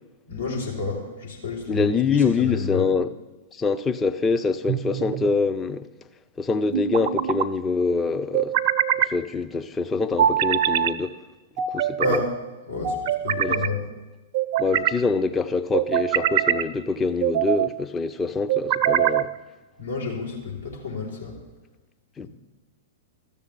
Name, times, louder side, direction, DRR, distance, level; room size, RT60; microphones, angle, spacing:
voice 1, 0.3-1.9 2.2-2.9 12.0-12.3 12.7-13.8 19.8-21.4, left 3 dB, 75° left, 4.3 m, -30 dB
voice 2, 1.7-3.1 3.5-5.9 6.4-8.6 9.0-11.1 11.7-12.2 13.4-13.5 14.6-19.3 22.2-22.3, left 4 dB, 15° left, 0.6 m, -25 dB
sound 1, 4.7-5.3 6.7-7.5 8.3-9.1 10.2-10.9 11.6-12.2 12.8-13.7 14.3-15.0 15.7-16.6 17.2-17.7 18.5-19.3, right 10 dB, 45° right, 0.5 m, -23 dB
13.5 x 6.9 x 8.5 m
figure-of-eight pair, 105°, 0 cm